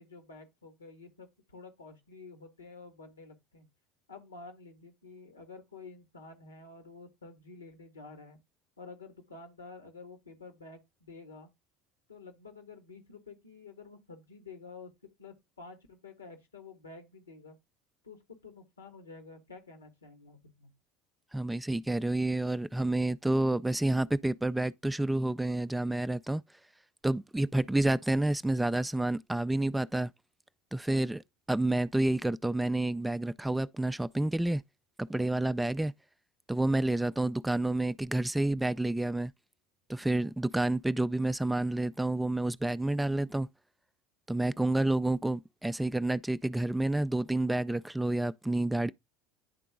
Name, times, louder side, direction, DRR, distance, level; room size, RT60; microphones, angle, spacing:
voice 1, 0.0-3.7 4.1-8.4 8.8-11.5 12.1-17.6 18.0-20.7, left 4 dB, 90° left, 1.7 m, -50 dB
voice 2, 21.3-26.4 27.0-30.1 30.7-31.2 31.5-34.6 35.0-35.9 36.5-39.3 39.9-43.5 44.3-48.9, right 2 dB, 5° right, 0.3 m, -29 dB
10.0 x 3.7 x 3.5 m
hypercardioid pair, 75°, 0 cm